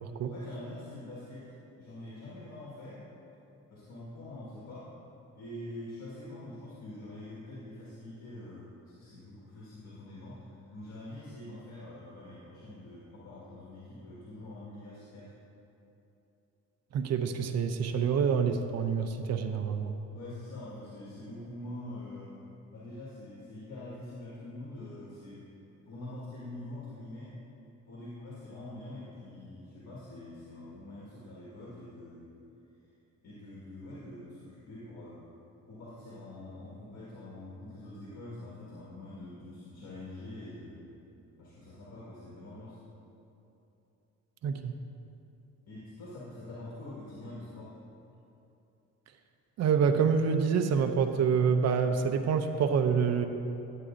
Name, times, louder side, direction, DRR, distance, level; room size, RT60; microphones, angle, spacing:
voice 1, 0.2-1.5 1.8-3.0 3.7-4.9 5.3-15.3 20.1-22.4 22.7-25.5 25.9-27.3 27.9-32.3 33.2-35.2 35.7-40.9 41.4-42.8 45.7-47.8, left 1 dB, 60° left, -7 dB, 1.7 m, -45 dB
voice 2, 16.9-19.9 44.4-44.7 49.6-53.3, right 6 dB, 60° right, 7 dB, 0.6 m, -27 dB
11.0 x 8.2 x 2.6 m, 2.9 s
cardioid pair, 90°, 30 cm